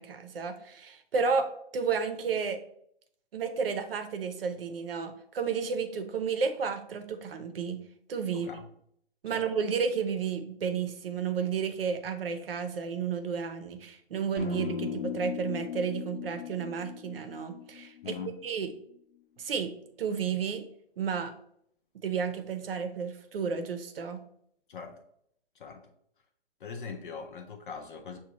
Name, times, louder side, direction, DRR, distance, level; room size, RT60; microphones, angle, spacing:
voice 1, 0.0-2.6 3.3-7.8 8.1-8.5 9.2-18.1 18.4-18.7 19.4-19.7 20.0-20.6 21.0-21.3 22.0-24.2, right 6 dB, 65° right, 0.8 m, -32 dB
voice 2, 8.3-8.7 9.3-9.5 18.0-18.4 24.7-25.0 25.6-25.9 26.6-28.2, left 6 dB, 55° left, 0.5 m, -41 dB
sound 1, 14.4-18.5, left 8 dB, 85° left, 0.9 m, -37 dB
6.1 x 2.4 x 2.9 m
hypercardioid pair, 140°, 31 cm